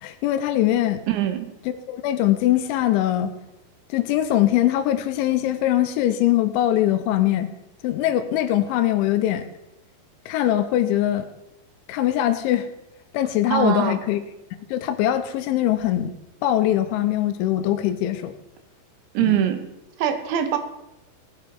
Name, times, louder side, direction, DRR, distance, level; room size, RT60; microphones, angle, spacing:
voice 1, 0.0-1.0 1.7-3.3 3.9-7.5 7.8-9.5 10.3-11.3 11.9-12.7 13.1-14.2 14.7-16.1 16.4-18.3 19.2-19.5, left 12 dB, 90° left, 8 dB, 3.1 m, -22 dB
voice 2, 1.1-1.5 13.5-14.0 19.1-19.6 20.0-20.6, right 11 dB, 80° right, 8 dB, 3.2 m, -22 dB
17.5 x 7.0 x 4.7 m, 0.94 s
omnidirectional pair, 5.3 m